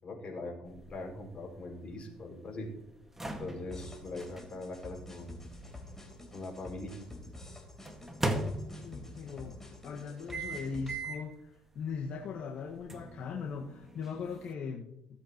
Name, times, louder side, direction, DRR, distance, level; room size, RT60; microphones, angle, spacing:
voice 1, 0.0-2.7 3.4-5.4 6.3-7.0, left 2 dB, 45° left, -1 dB, 5.4 m, -42 dB
sound 1, 0.6-6.8 7.8-9.2 10.3-11.3 11.8-12.0 12.9-14.5, right 2 dB, 10° right, 1.9 m, -39 dB
sound 2, 3.7-11.0, left 2 dB, 15° left, 3.8 m, -48 dB
voice 2, 8.5-9.5 9.8-11.5 11.7-14.8, left 5 dB, 65° left, -2 dB, 1.7 m, -39 dB
18.5 x 8.1 x 3.1 m, 0.80 s
supercardioid pair, 80°, 3 cm